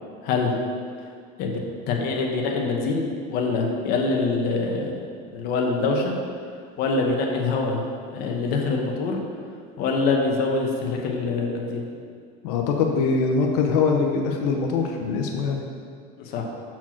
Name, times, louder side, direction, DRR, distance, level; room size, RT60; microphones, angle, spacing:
voice 1, 1.9-5.0 5.3-6.1 6.8-7.8 8.1-9.2 9.8-11.9 16.2-16.4, left 3 dB, 50° left, 1 dB, 1.0 m, -24 dB
voice 2, 12.4-15.6, left 4 dB, 85° left, 2 dB, 0.7 m, -23 dB
5.9 x 4.5 x 6.0 m, 2.2 s
cardioid pair, 170°, 20 cm